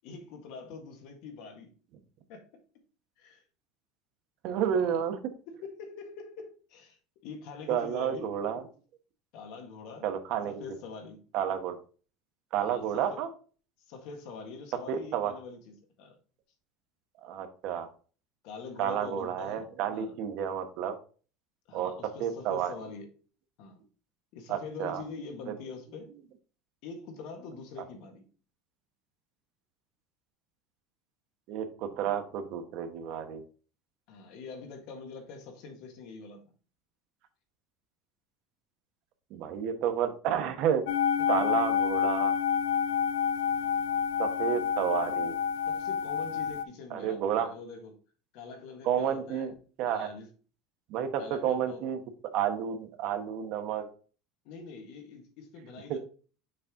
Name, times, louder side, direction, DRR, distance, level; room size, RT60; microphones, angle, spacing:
voice 1, 0.0-1.7 2.3-2.5 3.2-3.4 4.5-5.0 5.5-7.0 7.2-8.3 9.3-10.1 10.5-11.2 12.6-13.2 13.9-16.2 18.4-20.2 21.7-23.1 23.6-23.8 24.3-26.1 26.8-28.2 34.1-36.5 41.2-41.6 43.6-43.8 45.7-47.9 48.3-49.5 49.9-50.3 51.2-51.8 54.4-56.0, left 4 dB, 55° left, 1.7 m, -44 dB
voice 2, 4.4-5.2 7.7-8.6 10.0-10.6 11.3-11.8 12.5-13.3 14.9-15.3 17.2-17.9 18.8-21.0 21.7-21.9 22.2-22.7 24.5-25.0 31.5-33.4 39.3-40.8 41.3-42.3 44.2-45.4 46.9-47.5 48.8-49.5 49.8-50.1 50.9-52.0 52.3-53.9, right 9 dB, 50° right, 1.1 m, -30 dB
sound 1, 40.9-46.6, left 7 dB, 90° left, 0.4 m, -28 dB
6.6 x 4.3 x 3.7 m
cardioid pair, 175°, 0 cm